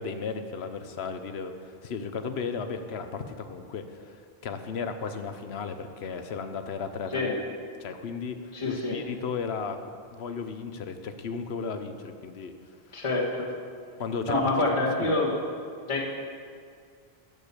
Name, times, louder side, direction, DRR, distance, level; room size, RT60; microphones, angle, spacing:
voice 1, 0.0-7.3 7.8-9.8 10.1-12.5 14.0-14.4 14.7-15.1, left 5 dB, 85° left, 8 dB, 1.1 m, -35 dB
voice 2, 8.5-9.0 12.9-13.5 14.3-15.3 15.9-16.0, left 2 dB, 30° left, -5 dB, 1.8 m, -26 dB
13.0 x 5.3 x 8.3 m, 2.2 s
omnidirectional pair, 1.0 m